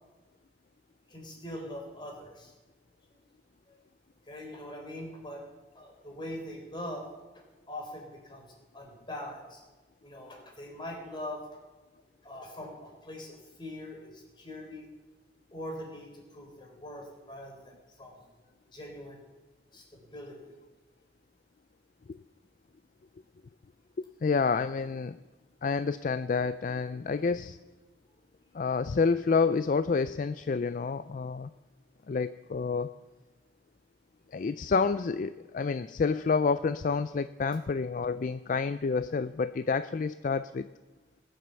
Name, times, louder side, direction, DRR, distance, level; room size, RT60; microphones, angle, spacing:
voice 1, 1.1-2.5 3.1-3.2 3.7-3.8 4.2-5.4 5.7-7.1 7.3-9.6 10.0-11.5 12.2-14.9 15.5-18.2 18.7-19.2 19.7-20.5, left 1 dB, 25° left, 1 dB, 3.8 m, -42 dB
voice 2, 24.0-25.2 25.6-27.6 28.5-31.5 32.1-32.9 34.3-40.7, left 4 dB, 45° left, 13 dB, 0.4 m, -29 dB
20.5 x 7.7 x 7.0 m, 1.2 s
head